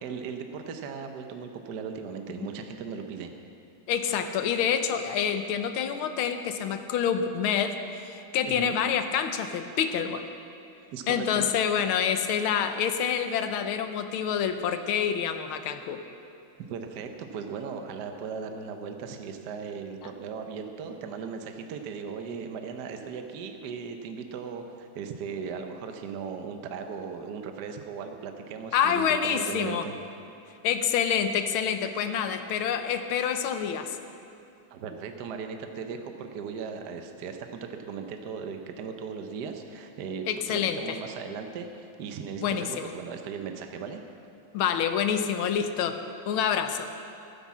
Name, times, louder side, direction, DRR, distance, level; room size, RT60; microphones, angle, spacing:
voice 1, 0.0-3.3 8.4-8.8 10.9-11.5 16.7-29.9 34.7-44.0, right 6 dB, 60° right, 5 dB, 1.3 m, -37 dB
voice 2, 3.9-10.3 11.1-16.0 28.7-29.9 30.6-34.0 40.3-41.0 42.4-42.9 44.5-46.0 46.3-46.9, left 8 dB, 85° left, 8 dB, 1.7 m, -27 dB
13.0 x 9.9 x 7.3 m, 2.6 s
omnidirectional pair, 2.2 m